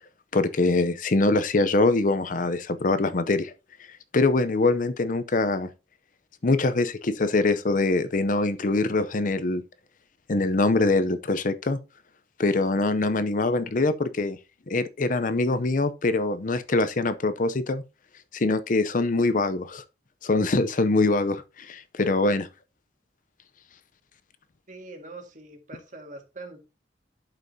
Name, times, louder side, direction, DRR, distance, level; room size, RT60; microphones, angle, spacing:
voice 1, 0.3-3.5 4.1-5.7 6.4-9.6 10.3-11.8 12.4-14.4 14.7-17.8 18.3-19.8 20.2-22.5, left 2 dB, 50° left, 0.6 m, -23 dB
voice 2, 24.7-26.6, right 2 dB, 45° right, 1.9 m, -43 dB
11.5 x 5.4 x 2.7 m
head